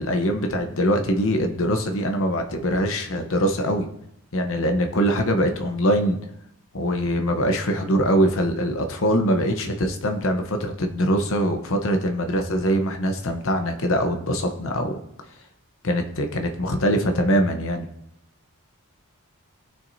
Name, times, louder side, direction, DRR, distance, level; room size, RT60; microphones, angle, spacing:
voice 1, 0.0-3.9 4.3-6.2 6.7-15.0 15.8-17.9, equal, 65° left, 5 dB, 0.9 m, -23 dB
18.0 x 6.1 x 2.7 m, 0.80 s
head